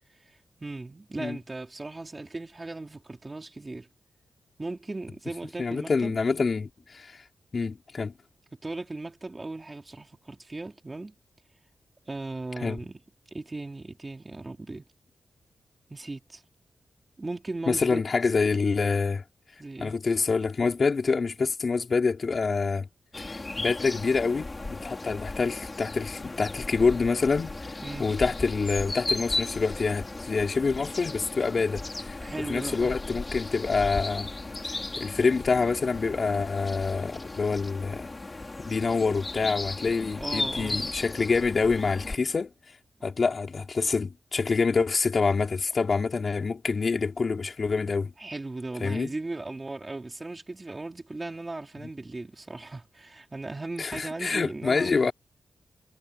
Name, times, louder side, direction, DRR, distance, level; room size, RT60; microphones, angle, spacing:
voice 1, 0.3-3.9 4.6-6.2 8.6-11.1 12.1-13.0 13.3-14.8 15.9-16.4 17.2-18.0 19.6-20.0 27.8-28.1 32.2-33.0 40.2-40.8 48.2-55.1, right 2 dB, 25° right, 2.9 m, -37 dB
voice 2, 5.6-7.2 7.5-8.1 12.6-12.8 17.7-19.2 19.8-22.9 23.2-27.5 28.0-32.2 32.5-34.3 35.0-38.1 38.6-42.5 43.0-48.1 48.8-49.1 53.8-55.1, left 4 dB, 45° left, 4.3 m, -26 dB
sound 1, 23.1-42.2, left 2 dB, 25° left, 5.1 m, -36 dB
wide cardioid pair, 115°, 0 cm